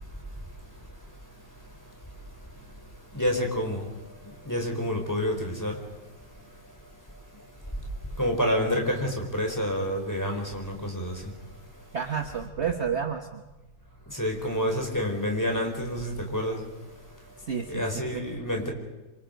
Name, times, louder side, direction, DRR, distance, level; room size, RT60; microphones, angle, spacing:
voice 1, 3.1-3.9 4.2-5.8 8.2-11.2 14.1-16.6 17.7-18.7, equal, 10° left, 1 dB, 4.3 m, -28 dB
voice 2, 11.9-13.4 17.5-18.2, right 7 dB, 45° right, 5 dB, 1.4 m, -30 dB
27.0 x 26.0 x 5.2 m, 1.1 s
omnidirectional pair, 1.8 m